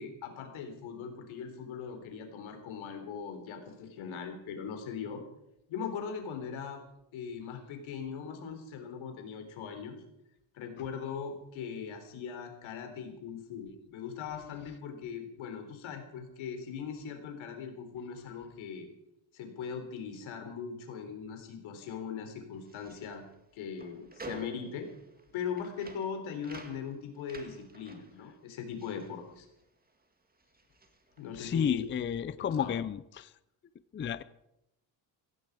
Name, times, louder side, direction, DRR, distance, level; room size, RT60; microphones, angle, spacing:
voice 1, 0.0-5.2 5.7-6.8 7.1-10.0 10.5-18.9 19.3-23.2 23.5-24.9 25.3-29.5 31.2-31.8 32.6-32.7, left 6 dB, 85° left, 5 dB, 3.7 m, -40 dB
sound 1, 22.5-30.0 30.3-31.8, right 2 dB, 20° right, 2.0 m, -51 dB
voice 2, 31.4-33.3 33.9-34.2, left 8 dB, 25° left, 16 dB, 0.5 m, -31 dB
16.5 x 16.0 x 4.9 m, 0.86 s
cardioid pair, 125°, 46 cm